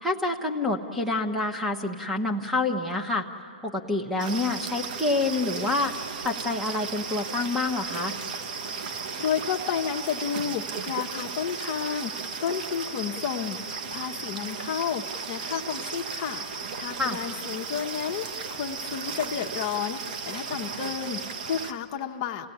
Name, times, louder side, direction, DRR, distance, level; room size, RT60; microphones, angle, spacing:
voice 1, 0.0-3.3 3.6-8.2 17.0-17.2, left 2 dB, 5° right, 2 dB, 1.1 m, -27 dB
sound 1, 4.2-21.7, right 5 dB, 50° right, 1.2 m, -35 dB
voice 2, 9.2-22.5, left 8 dB, 35° left, 3 dB, 1.0 m, -31 dB
28.5 x 17.0 x 10.0 m, 2.7 s
hypercardioid pair, 150°, 6 cm